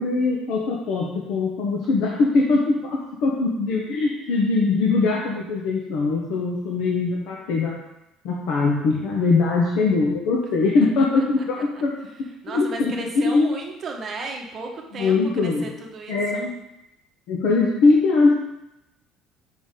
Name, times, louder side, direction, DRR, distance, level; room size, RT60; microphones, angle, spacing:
voice 1, 0.0-7.8 8.2-11.9 12.5-13.5 14.9-15.7 16.1-16.5 17.3-18.4, left 3 dB, 65° left, -3 dB, 1.1 m, -21 dB
voice 2, 9.2-9.6 10.8-11.2 11.7-11.8 12.4-16.5, right 3 dB, 30° right, 1 dB, 1.1 m, -35 dB
7.1 x 6.0 x 3.8 m, 0.90 s
cardioid pair, 165°, 0 cm